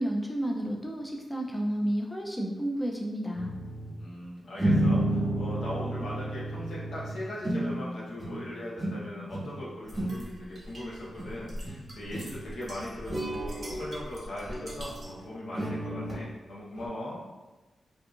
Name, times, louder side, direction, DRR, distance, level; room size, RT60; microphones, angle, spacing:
voice 1, 0.0-3.5, right 1 dB, 10° left, 0 dB, 0.3 m, -31 dB
sound 1, 3.3-4.0 4.6-7.9 8.2-8.5 8.8-9.6 9.8-10.3 11.2-11.3 11.6-11.8 12.1-12.4 13.1-13.8 14.4-16.2 16.8-16.9, right 1 dB, 25° right, 1.2 m, -31 dB
voice 2, 4.0-17.2, left 1 dB, 85° left, -6 dB, 0.8 m, -39 dB
sound 2, 9.9-15.2, equal, 45° right, 0.6 m, -44 dB
2.7 x 2.4 x 2.4 m, 1.2 s
cardioid pair, 80°, 0 cm